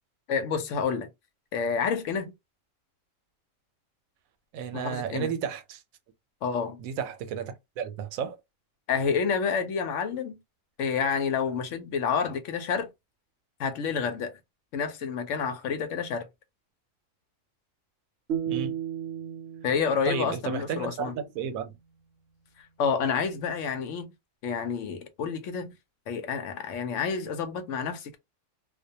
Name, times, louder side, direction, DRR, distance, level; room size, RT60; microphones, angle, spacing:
voice 1, 0.3-1.1 1.5-2.3 4.7-5.3 6.4-6.8 8.9-10.4 10.8-12.9 13.6-14.3 14.7-16.3 19.6-21.1 22.6-24.1 24.4-25.7 26.1-28.2, left 6 dB, 70° left, 0.9 m, -29 dB
voice 2, 4.5-5.8 6.8-8.4 18.5-18.8 20.1-21.8, right 7 dB, 90° right, 1.0 m, -33 dB
sound 1, 18.3-21.4, right 9 dB, 60° right, 0.8 m, -35 dB
2.4 x 2.1 x 2.7 m
omnidirectional pair, 1.4 m